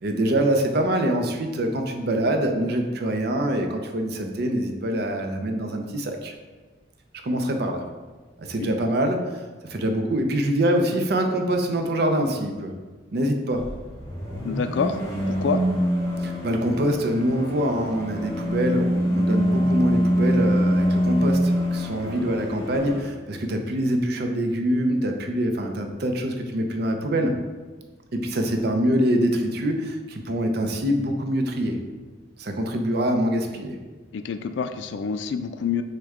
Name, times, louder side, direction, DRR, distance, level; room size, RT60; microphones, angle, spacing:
voice 1, 0.0-6.3 7.2-7.8 8.4-12.7 13.1-13.7 16.2-27.4 28.1-31.8 32.4-33.8, right 1 dB, 55° right, 4 dB, 0.5 m, -24 dB
sound 1, 13.5-23.0, equal, 20° left, 1.0 m, -24 dB
voice 2, 14.4-15.0 15.3-15.6 34.1-35.8, left 6 dB, 70° left, 9 dB, 0.3 m, -27 dB
6.2 x 2.2 x 3.5 m, 1.3 s
head